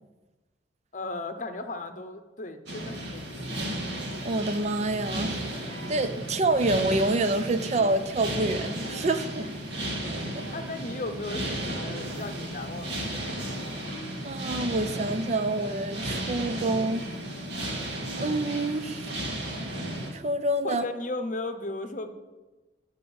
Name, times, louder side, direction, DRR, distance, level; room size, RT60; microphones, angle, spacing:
voice 1, 0.9-3.6 9.8-10.1 10.5-13.2 20.6-22.1, left 2 dB, 45° left, 8 dB, 0.7 m, -36 dB
sound 1, 2.7-20.1, right 1 dB, 70° right, 1.8 m, -34 dB
voice 2, 4.2-9.5 10.3-10.4 14.2-17.1 17.7-19.1 20.1-20.9, right 2 dB, 40° right, 10 dB, 0.5 m, -27 dB
10.5 x 5.2 x 7.0 m, 1.2 s
head